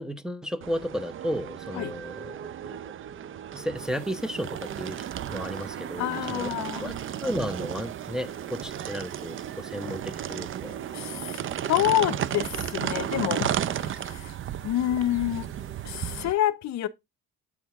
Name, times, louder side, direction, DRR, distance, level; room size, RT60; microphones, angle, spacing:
voice 1, 0.0-2.8 3.5-6.5 6.8-6.9 7.2-10.8, equal, ahead, 0.9 m, -33 dB
sound 1, 0.6-16.3, right 10 dB, 40° right, 0.6 m, -34 dB
sound 2, 3.7-16.2, right 5 dB, 90° right, 5.5 m, -58 dB
voice 2, 6.0-7.0 10.9-11.4 11.7-14.3 14.6-15.5 15.8-16.9, left 12 dB, 60° left, 0.8 m, -28 dB
8.6 x 4.4 x 3.5 m
supercardioid pair, 70°, 31 cm